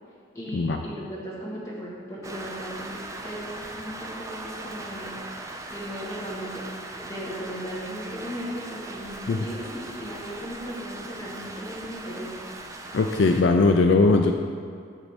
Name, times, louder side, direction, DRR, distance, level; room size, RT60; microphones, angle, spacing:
voice 1, 0.3-5.2 5.7-12.3, equal, 15° left, -6 dB, 1.7 m, -37 dB
Rain, 2.2-13.4, right 2 dB, 15° right, 0.4 m, -39 dB
voice 2, 12.9-14.3, left 3 dB, 65° left, 4 dB, 0.4 m, -19 dB
8.2 x 4.1 x 7.0 m, 2.3 s
head